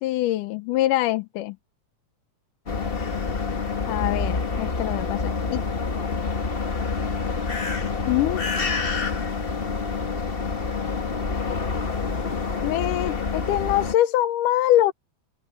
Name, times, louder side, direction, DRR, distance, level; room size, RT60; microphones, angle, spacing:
voice 1, 0.0-1.6 3.9-5.6 8.1-8.4 12.6-14.9, left 14 dB, 90° left, 2.4 m, -23 dB
sound 1, 2.7-13.9, left 4 dB, 60° left, 0.5 m, -27 dB
open air
omnidirectional pair, 3.6 m